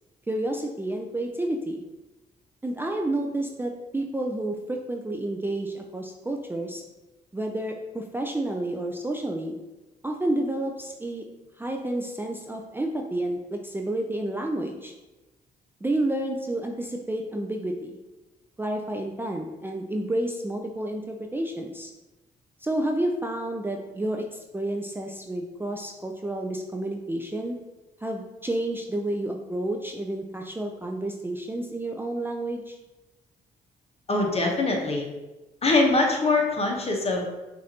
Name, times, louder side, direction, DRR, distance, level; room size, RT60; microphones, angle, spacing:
voice 1, 0.3-1.8 2.6-6.8 7.3-9.5 10.0-11.2 11.6-14.9 15.8-18.0 18.6-21.9 22.6-27.6 28.0-32.8, right 1 dB, 10° right, 2 dB, 0.4 m, -30 dB
voice 2, 34.1-35.1 35.6-37.3, left 2 dB, 35° left, 1 dB, 1.1 m, -23 dB
6.2 x 2.6 x 2.8 m, 1.1 s
supercardioid pair, 60°, 17 cm